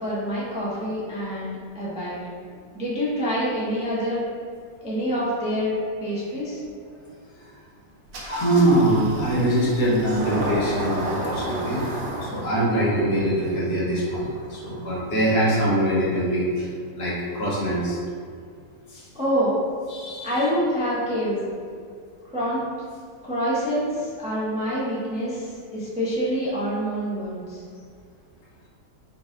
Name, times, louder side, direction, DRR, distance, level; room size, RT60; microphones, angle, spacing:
voice 1, 0.0-2.2 2.7-4.2 4.8-5.7 6.0-6.6 19.1-19.5 20.2-21.5 22.3-22.6 23.2-27.6, equal, 10° right, -8 dB, 0.4 m, -26 dB
Engine starting, 8.1-15.4, right 1 dB, 55° right, 1.2 m, -33 dB
voice 2, 8.2-16.7 16.9-18.0 18.9-19.0 19.9-20.4, right 1 dB, 60° left, -7 dB, 1.7 m, -23 dB
4.8 x 2.7 x 3.8 m, 2.2 s
omnidirectional pair, 2.0 m